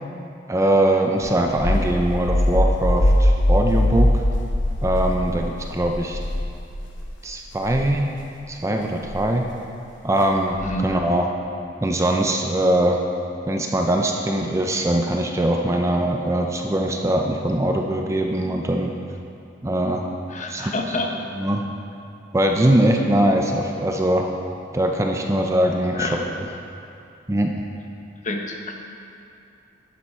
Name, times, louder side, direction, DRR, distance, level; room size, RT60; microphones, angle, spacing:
voice 1, 0.5-4.2 4.8-5.4 5.7-6.2 7.2-8.1 8.5-9.4 10.0-11.3 11.8-13.0 13.5-18.9 19.6-20.1 20.5-21.0 21.3-21.6 22.3-24.3 24.7-26.1 27.3-27.5, right 1 dB, 15° right, 2 dB, 0.4 m, -21 dB
sound 1, 1.2-7.1 7.5-7.9 9.0-9.3 10.5-10.9, left 1 dB, 75° left, 0.9 m, -21 dB
voice 2, 20.3-21.1 25.9-26.2 28.2-28.7, left 2 dB, 40° left, 2 dB, 0.9 m, -27 dB
11.0 x 7.6 x 4.3 m, 2.6 s
head